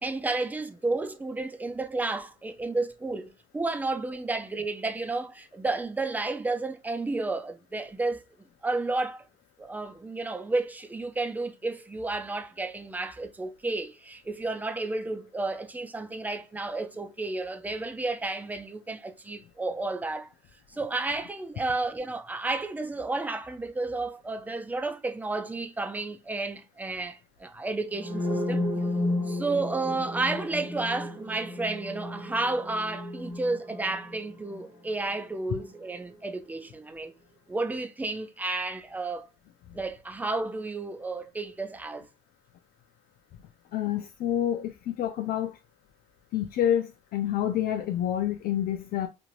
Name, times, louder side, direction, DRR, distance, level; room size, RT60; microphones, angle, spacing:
voice 1, 0.0-8.2 8.6-9.2 9.6-20.3 20.7-28.6 29.3-37.1 37.5-39.3 39.7-42.1, right 3 dB, 10° right, 0.4 m, -32 dB
sound 1, 27.9-35.8, left 1 dB, 30° right, 1.2 m, -33 dB
voice 2, 43.7-45.6 46.3-49.1, left 11 dB, 60° left, 0.4 m, -28 dB
2.6 x 2.5 x 3.1 m
cardioid pair, 110°, 17 cm